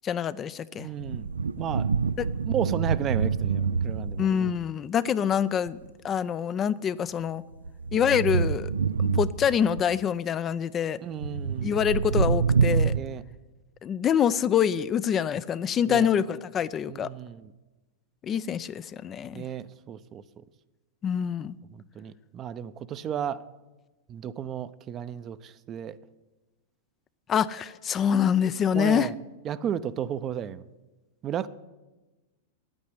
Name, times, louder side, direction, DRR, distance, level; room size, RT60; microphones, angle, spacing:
voice 1, 0.0-0.9 2.2-2.3 4.2-5.8 6.0-7.4 7.9-8.7 9.0-11.0 11.6-12.9 13.8-17.1 18.2-19.5 21.0-21.5 27.3-29.1, left 8 dB, 30° left, 15 dB, 0.4 m, -26 dB
voice 2, 0.7-1.3 1.6-1.9 2.5-4.5 11.0-11.8 12.9-13.2 15.9-16.1 16.9-17.5 19.3-20.2 21.7-23.4 24.1-26.0 28.7-29.1 29.4-30.6 31.2-31.5, right 9 dB, 35° right, 14 dB, 0.6 m, -33 dB
sound 1, 0.9-4.6 5.7-5.9 7.2-9.8 11.2-13.0, right 5 dB, 85° right, 0.4 m, -26 dB
9.3 x 8.8 x 9.5 m, 1.1 s
hypercardioid pair, 100°, 0 cm